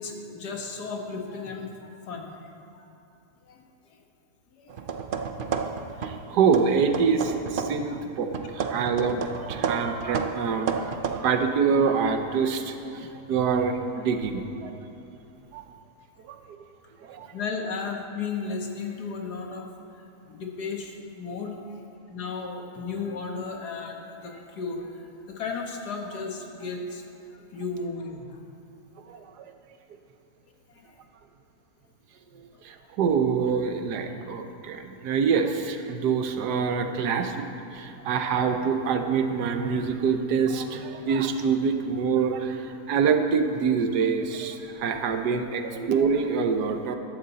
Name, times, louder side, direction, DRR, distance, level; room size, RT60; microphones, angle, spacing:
voice 1, 0.0-2.5 2.7-2.9 3.5-3.6 3.9-4.0 4.6-4.9 17.2-19.7 20.2-21.8 22.1-27.0 27.5-28.4 29.1-29.2 30.7-31.0 38.0-38.1, left 4 dB, 80° left, 2 dB, 1.9 m, -35 dB
sound 1, 4.7-6.2 6.5-7.9 8.3-11.2, right 6 dB, 60° right, 0.5 m, -31 dB
voice 2, 6.0-14.7 15.5-15.6 16.3-16.6 17.0-17.3 29.1-29.2 32.6-47.0, right 5 dB, 85° right, 7 dB, 1.4 m, -26 dB
14.0 x 12.5 x 4.1 m, 2.8 s
omnidirectional pair, 1.7 m